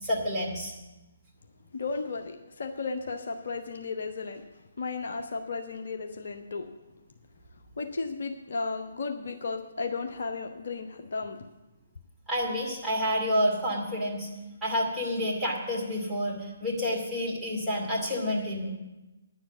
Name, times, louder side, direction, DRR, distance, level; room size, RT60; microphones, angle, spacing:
voice 1, 0.0-0.7 12.3-14.3 14.6-18.7, equal, 5° right, -7 dB, 2.5 m, -29 dB
voice 2, 1.7-4.4 4.8-6.8 7.8-11.5, left 4 dB, 50° left, 5 dB, 0.8 m, -34 dB
10.0 x 7.3 x 9.1 m, 1.1 s
figure-of-eight pair, 135°, 0 cm